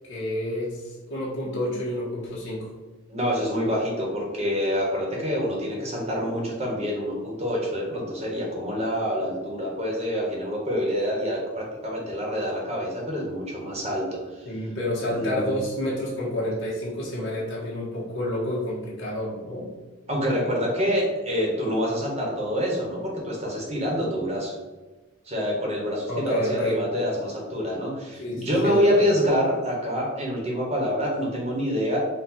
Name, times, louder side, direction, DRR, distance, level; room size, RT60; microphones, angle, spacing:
voice 1, 0.1-2.7 14.5-19.7 26.1-26.8 28.2-29.0, left 1 dB, 60° left, -6 dB, 1.1 m, -29 dB
voice 2, 3.1-14.6 15.1-15.6 20.1-24.5 25.2-32.0, equal, 30° right, -2 dB, 1.0 m, -26 dB
4.5 x 2.3 x 4.2 m, 1.2 s
head